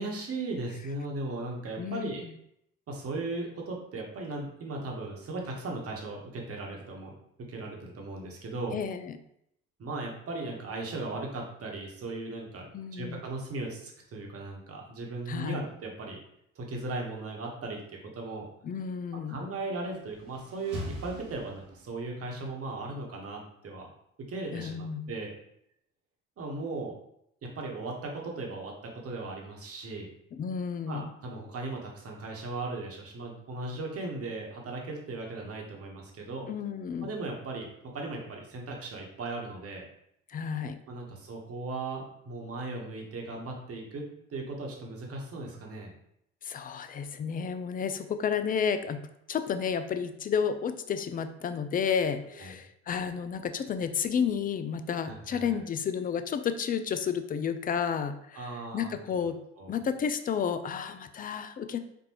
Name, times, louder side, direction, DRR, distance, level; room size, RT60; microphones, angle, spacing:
voice 1, 0.0-2.2 2.9-8.8 9.8-16.2 16.5-17.8 18.1-18.5 19.3-23.9 24.2-25.3 26.4-26.9 27.4-30.1 30.9-36.5 37.0-37.7 37.9-39.8 40.9-45.9 52.4-52.5 55.0-55.6 58.3-59.0 59.6-59.7, right 2 dB, 45° right, 0 dB, 1.1 m, -37 dB
voice 2, 1.8-2.3 8.7-9.2 12.7-13.2 15.3-15.6 18.6-19.4 24.5-25.1 30.4-31.1 36.5-37.1 40.3-40.8 46.4-59.4 59.7-61.8, left 7 dB, 25° left, 9 dB, 0.4 m, -31 dB
sound 1, 19.7-22.1, left 1 dB, 80° right, 1.1 m, -42 dB
4.4 x 2.6 x 2.9 m, 0.75 s
hypercardioid pair, 55°, 34 cm